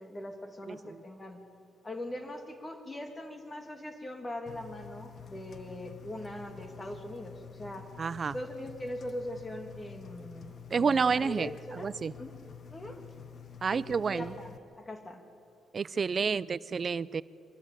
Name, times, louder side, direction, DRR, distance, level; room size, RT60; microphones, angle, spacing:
voice 1, 0.0-1.4 1.8-7.9 8.3-11.9 12.2-12.4 12.7-13.0 13.7-15.2, left 1 dB, 20° left, 6 dB, 2.3 m, -41 dB
voice 2, 0.7-1.0 8.0-8.3 10.7-12.1 13.6-14.3 15.7-17.2, right 5 dB, 40° right, 19 dB, 0.5 m, -30 dB
Engine, 4.5-14.6, left 7 dB, 50° left, 1.0 m, -49 dB
23.0 x 13.5 x 9.0 m, 2.6 s
cardioid pair, 90°, 0 cm